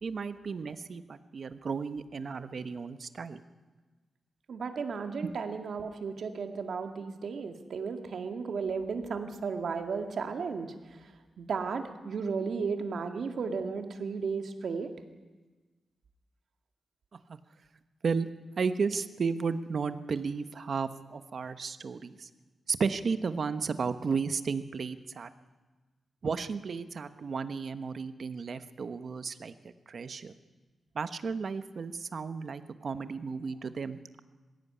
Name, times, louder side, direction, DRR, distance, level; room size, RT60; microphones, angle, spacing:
voice 1, 0.0-3.4 5.2-5.3 17.3-17.4 18.0-18.3 18.6-22.3 22.7-25.3 26.2-29.5 29.9-30.3 30.9-34.2, right 5 dB, 55° right, 11 dB, 1.1 m, -33 dB
voice 2, 4.5-14.9, right 5 dB, 70° right, 6 dB, 2.0 m, -34 dB
21.0 x 16.0 x 9.7 m, 1.3 s
wide cardioid pair, 110°, 0 cm